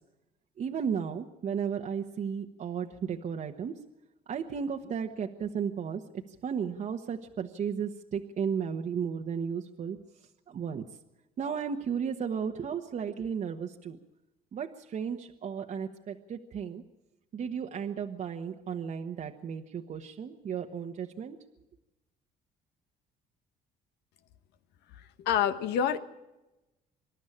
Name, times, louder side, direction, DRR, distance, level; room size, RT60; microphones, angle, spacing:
voice 1, 0.6-3.7 4.3-10.0 10.5-10.8 11.4-14.0 14.5-16.8 17.3-21.4, right 7 dB, 45° right, 3 dB, 1.3 m, -34 dB
voice 2, 25.2-26.0, left 9 dB, 85° left, 10 dB, 1.5 m, -26 dB
26.0 x 12.0 x 8.6 m, 1.0 s
cardioid pair, 110°, 17 cm